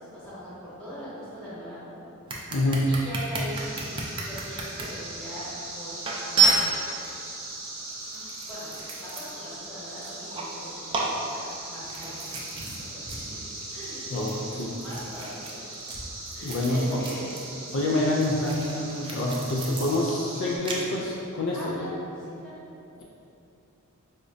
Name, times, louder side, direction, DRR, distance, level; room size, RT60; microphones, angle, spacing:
voice 1, 0.0-1.9 2.9-6.0 6.3-7.1 8.5-13.4 13.7-14.5 14.8-15.4 16.3-17.4 21.5-22.6, equal, 5° left, -12 dB, 1.1 m, -41 dB
sound 1, 2.3-4.8 5.5-5.6 6.0-7.1 7.9-9.5 9.8-10.6 10.9-12.8 13.1-13.3 13.5-17.4 17.7-20.8, right 3 dB, 20° right, 0.3 m, -30 dB
voice 2, 2.5-2.9 14.1-14.3 14.6-14.8 16.4-17.0 17.7-21.8 23.0-23.1, left 1 dB, 55° left, -3 dB, 0.3 m, -26 dB
sound 2, 3.5-20.6, right 2 dB, 65° right, 0.7 m, -40 dB
4.9 x 2.1 x 2.5 m, 2.7 s
head